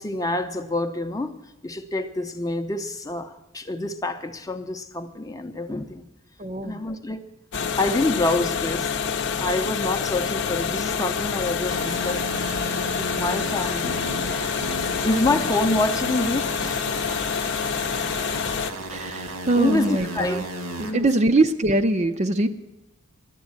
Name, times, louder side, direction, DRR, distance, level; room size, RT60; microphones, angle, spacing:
voice 1, 0.0-1.4 1.6-6.1 6.6-7.2 7.8-8.9 9.4-12.2 13.0-14.1 15.0-16.8 19.5-20.4 20.8-21.1, left 2 dB, 15° left, 0.6 m, -27 dB
voice 2, 6.4-6.8 18.9-20.5 20.8-22.5, right 2 dB, 30° right, 0.5 m, -22 dB
sound 1, 7.5-18.7, left 6 dB, 55° left, 0.7 m, -27 dB
sound 2, 11.7-20.9, right 1 dB, 85° right, 1.9 m, -35 dB
11.5 x 8.2 x 9.6 m
head